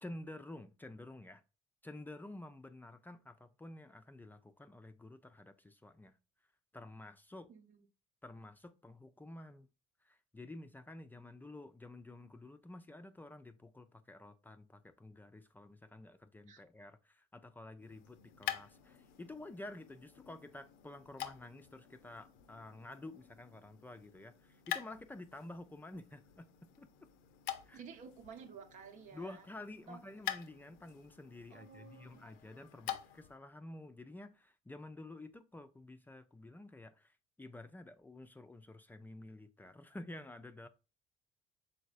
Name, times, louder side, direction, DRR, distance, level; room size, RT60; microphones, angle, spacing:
voice 1, 0.0-1.4 1.8-6.2 6.7-7.5 8.2-9.7 10.0-27.1 27.7-27.8 29.1-40.7, left 2 dB, 10° left, 0.4 m, -51 dB
voice 2, 7.5-7.9 16.5-16.6 27.7-29.5 29.9-30.0 31.5-32.2, right 6 dB, 60° right, 0.8 m, -53 dB
sound 1, 17.8-33.4, left 11 dB, 80° left, 0.5 m, -47 dB
5.3 x 3.9 x 2.5 m
supercardioid pair, 80°, 15 cm